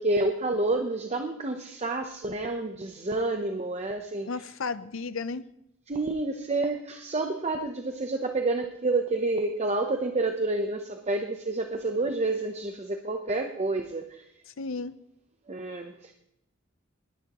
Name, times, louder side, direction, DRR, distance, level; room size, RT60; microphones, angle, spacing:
voice 1, 0.0-4.3 5.9-14.2 15.5-16.1, right 2 dB, 35° right, 5 dB, 0.8 m, -29 dB
voice 2, 4.3-5.4 14.5-14.9, left 4 dB, 70° left, 14 dB, 0.7 m, -33 dB
19.5 x 10.5 x 3.0 m, 0.78 s
head